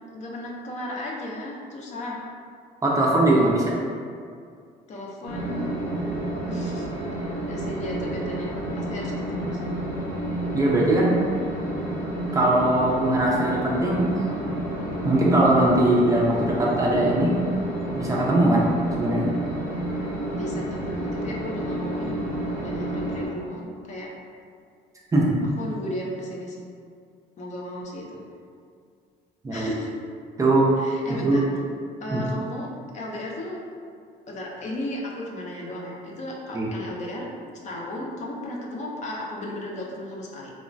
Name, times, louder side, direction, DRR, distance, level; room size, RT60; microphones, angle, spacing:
voice 1, 0.1-2.2 4.9-5.8 6.5-9.7 20.3-22.3 22.6-24.1 25.6-26.7 27.4-28.2 29.5-29.9 30.8-31.5 32.0-33.6 34.3-37.3 37.6-40.5, left 1 dB, 45° left, -2 dB, 0.5 m, -35 dB
voice 2, 2.8-3.7 10.5-11.2 12.3-14.1 15.0-17.4 18.0-18.7 19.0-19.3 25.1-25.4 29.4-29.7 30.4-30.7 31.2-31.5 32.1-32.2 36.5-36.7, right 1 dB, 20° right, -4 dB, 0.4 m, -20 dB
sound 1, 5.2-23.3, right 1 dB, 80° left, 1.0 m, -30 dB
3.1 x 2.1 x 2.5 m, 2.2 s
cardioid pair, 110°, 17 cm